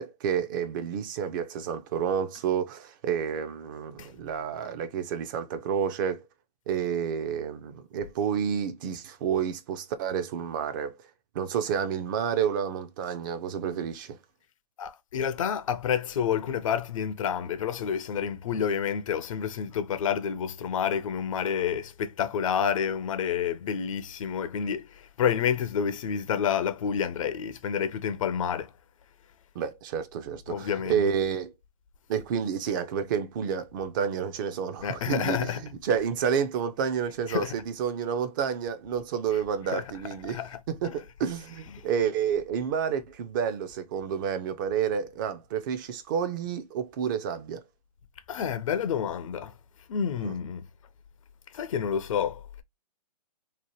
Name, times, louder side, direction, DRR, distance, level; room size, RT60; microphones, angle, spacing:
voice 1, 0.0-6.2 6.7-10.9 11.3-14.2 29.6-31.5 32.1-40.4 40.7-47.6 50.2-50.3, right 7 dB, 30° right, 0.4 m, -30 dB
voice 2, 14.8-28.7 30.5-31.0 34.8-35.6 37.3-37.5 39.7-39.9 40.3-40.6 40.8-40.9 41.7-41.8 48.3-49.5 49.9-50.6 51.5-52.4, left 8 dB, 55° left, 0.4 m, -29 dB
2.8 x 2.1 x 2.9 m
hypercardioid pair, 130°, 20 cm